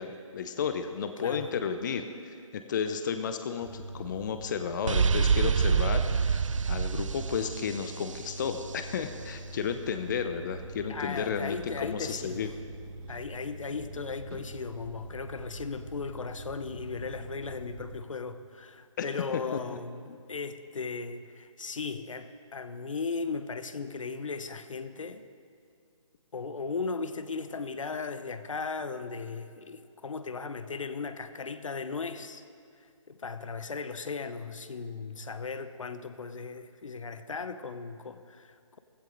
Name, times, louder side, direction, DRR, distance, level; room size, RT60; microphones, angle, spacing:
voice 1, 0.0-6.4 6.7-12.5 19.0-19.1 19.5-19.6, left 6 dB, 35° left, 0.7 m, -33 dB
voice 2, 1.2-1.5 10.9-12.5 13.1-25.3 26.3-32.4 32.8-38.8, left 4 dB, 70° left, 0.9 m, -37 dB
sound 1, 3.6-18.0, right 1 dB, 15° right, 0.9 m, -44 dB
sound 2, 4.9-8.6, right 6 dB, 65° right, 0.6 m, -26 dB
16.5 x 15.5 x 3.9 m
figure-of-eight pair, 150°, 17 cm